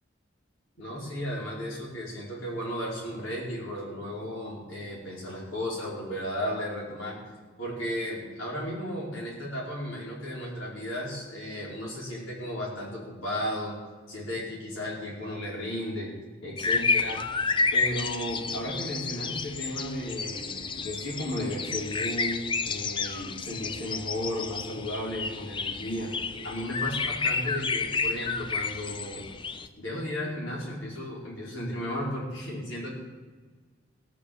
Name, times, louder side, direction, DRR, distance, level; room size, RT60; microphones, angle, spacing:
voice 1, 0.8-7.2 7.6-13.8 14.1-16.1 16.4-17.2 17.7-26.1 26.4-29.3 29.8-32.9, equal, 70° left, -5 dB, 5.0 m, -34 dB
sound 1, 16.6-29.7, left 4 dB, 25° left, 0.4 m, -30 dB
17.5 x 6.1 x 7.1 m, 1.4 s
head